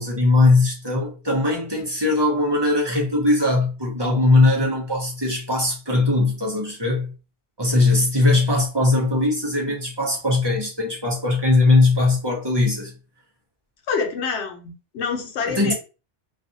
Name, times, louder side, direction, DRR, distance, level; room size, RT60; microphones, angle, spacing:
voice 1, 0.0-7.1 7.6-12.9 15.5-15.7, left 2 dB, 30° right, 0.6 m, -20 dB
voice 2, 13.9-15.7, left 5 dB, 80° left, 0.9 m, -27 dB
2.6 x 2.5 x 2.5 m
omnidirectional pair, 1.1 m